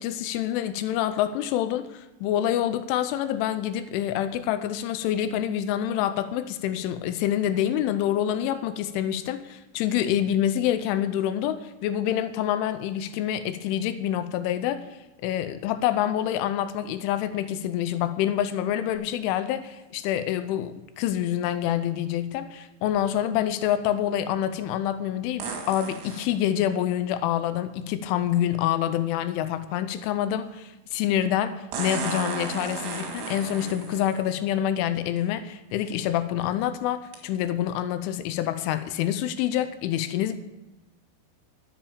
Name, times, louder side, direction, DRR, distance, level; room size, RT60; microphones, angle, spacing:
voice 1, 0.0-14.9 15.2-40.4, left 11 dB, 85° left, 11 dB, 3.2 m, -27 dB
sound 1, 19.0-19.1 25.4-26.3 28.3-28.4 31.7-34.2 35.2-35.3 35.9-36.2 37.1-37.2, right 5 dB, 75° right, 4.4 m, -34 dB
13.5 x 7.7 x 6.9 m, 1.0 s
omnidirectional pair, 5.5 m